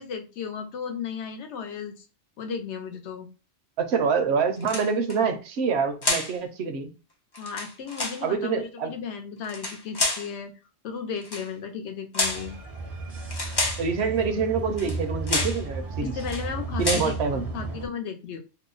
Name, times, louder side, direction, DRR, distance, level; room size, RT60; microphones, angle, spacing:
voice 1, 0.0-2.1 2.4-3.3 7.4-10.5 10.8-12.6 16.1-18.4, left 6 dB, 75° left, 0.9 m, -35 dB
voice 2, 3.8-6.9 8.2-8.9 13.8-16.2 16.8-17.5, right 5 dB, 70° right, 0.9 m, -26 dB
sound 1, 4.6-5.2 6.0-6.4 7.3-8.2 9.4-10.3 11.2-11.5 12.1-12.5 13.3-13.9 14.8-15.0 15.3-15.6 16.2-16.5 16.8-17.1, left 2 dB, 40° left, 0.3 m, -29 dB
sound 2, 12.2-17.9, right 3 dB, 40° right, 0.6 m, -34 dB
2.8 x 2.0 x 3.8 m
omnidirectional pair, 1.2 m